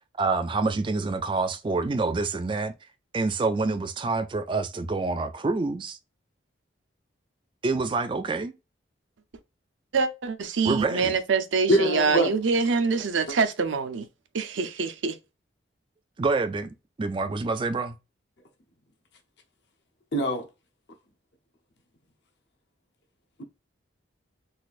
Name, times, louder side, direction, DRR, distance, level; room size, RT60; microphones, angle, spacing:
voice 1, 0.2-2.7 3.1-6.0 7.6-8.5 10.6-11.1 16.2-16.7 17.0-18.0, right 3 dB, 25° right, 0.3 m, -27 dB
voice 2, 9.9-14.1 14.3-15.2, right 4 dB, 75° right, 0.6 m, -25 dB
voice 3, 11.7-12.3 20.1-20.5, right 1 dB, 60° left, 0.7 m, -22 dB
4.1 x 2.5 x 2.4 m
head